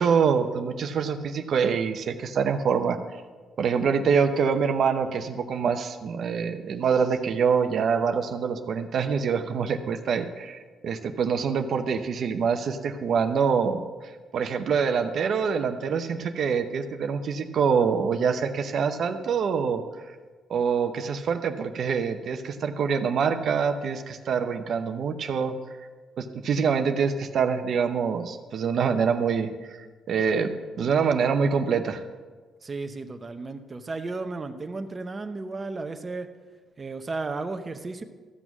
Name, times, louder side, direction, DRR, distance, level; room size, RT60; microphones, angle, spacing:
voice 1, 0.0-3.0 3.6-10.6 10.8-13.8 14.3-19.8 20.5-25.6 26.2-29.8 30.1-30.5 30.8-32.0, right 6 dB, 60° right, 7 dB, 0.7 m, -25 dB
voice 2, 32.6-36.3 36.8-38.0, right 3 dB, 30° right, 7 dB, 0.8 m, -34 dB
14.0 x 6.2 x 6.0 m, 1.4 s
cardioid pair, 90°, 0 cm